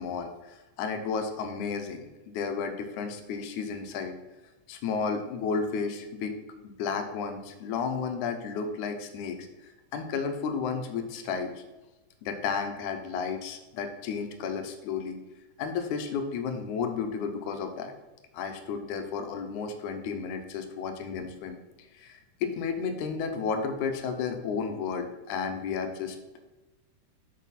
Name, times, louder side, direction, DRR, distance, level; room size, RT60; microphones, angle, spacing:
voice 1, 0.0-4.1 4.7-6.3 6.6-11.6 12.2-15.2 15.6-17.9 18.3-21.6 21.9-26.2, left 5 dB, 90° left, 6 dB, 2.3 m, -32 dB
6.5 x 6.3 x 4.1 m, 1.1 s
omnidirectional pair, 3.4 m